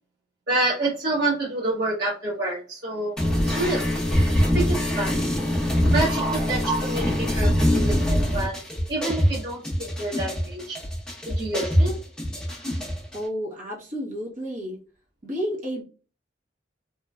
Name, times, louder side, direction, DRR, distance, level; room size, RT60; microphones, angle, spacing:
voice 1, 0.5-3.1 3.5-3.8 4.5-5.2 5.9-8.6 8.9-10.8 11.2-11.9, right 2 dB, 65° right, -8 dB, 1.1 m, -28 dB
sound 1, 3.2-13.2, equal, 5° left, 0.8 m, -23 dB
voice 2, 13.1-14.8 15.2-15.8, equal, 45° right, -3 dB, 0.9 m, -31 dB
3.1 x 2.2 x 2.3 m, 0.36 s
head